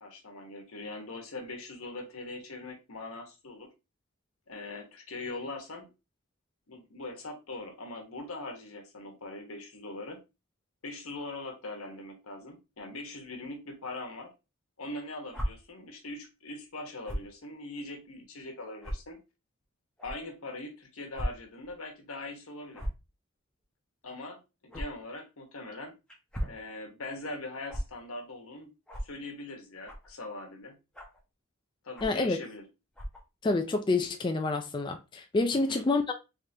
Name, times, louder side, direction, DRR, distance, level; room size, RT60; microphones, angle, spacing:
voice 1, 0.0-3.7 4.5-5.9 6.7-10.2 10.8-14.3 14.8-19.2 20.0-22.8 24.0-25.9 26.4-28.7 29.0-30.8 31.8-32.6 35.5-35.8, left 2 dB, 90° left, 1.1 m, -41 dB
sound 1, 15.3-15.5 17.0-17.3 18.0-18.1 18.8-18.9 20.0-20.1 21.1-21.3 21.6-21.7 22.7-23.0 24.7-24.8 26.1-26.6 27.7-27.8 28.9-29.1 29.8-30.1 30.9-31.2 31.9-32.2 32.9-33.2, equal, 5° left, 0.9 m, -35 dB
voice 2, 32.0-32.4 33.4-36.1, left 3 dB, 20° left, 0.3 m, -28 dB
3.6 x 3.4 x 2.6 m
head